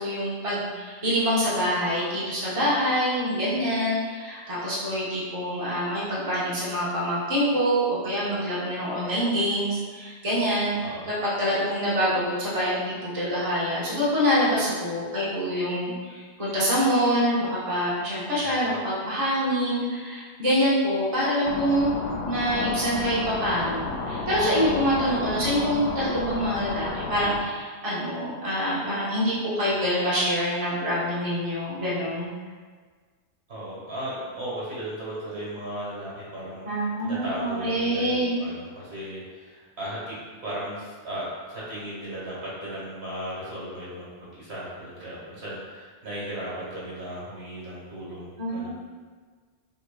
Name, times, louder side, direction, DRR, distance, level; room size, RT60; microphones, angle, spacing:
voice 1, 0.0-10.8 11.2-21.9 22.2-32.3 36.6-38.3 48.4-48.7, equal, 30° right, -9 dB, 1.0 m, -25 dB
sound 1, 21.4-27.4, left 3 dB, 65° left, 0.8 m, -32 dB
voice 2, 33.5-40.2 40.4-48.7, right 1 dB, 65° right, -8 dB, 1.7 m, -36 dB
6.0 x 3.0 x 2.3 m, 1.5 s
omnidirectional pair, 1.1 m